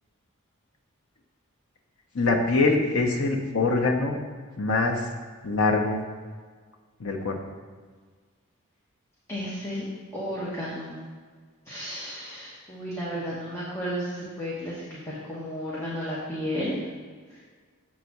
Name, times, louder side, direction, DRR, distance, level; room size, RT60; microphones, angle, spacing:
voice 1, 2.1-4.2 4.6-5.1 5.4-6.0 7.0-7.4, left 3 dB, 80° left, 1 dB, 0.9 m, -23 dB
voice 2, 9.3-9.8 10.1-11.0 11.7-16.8, equal, 10° left, -8 dB, 1.2 m, -33 dB
7.5 x 4.0 x 6.0 m, 1.5 s
head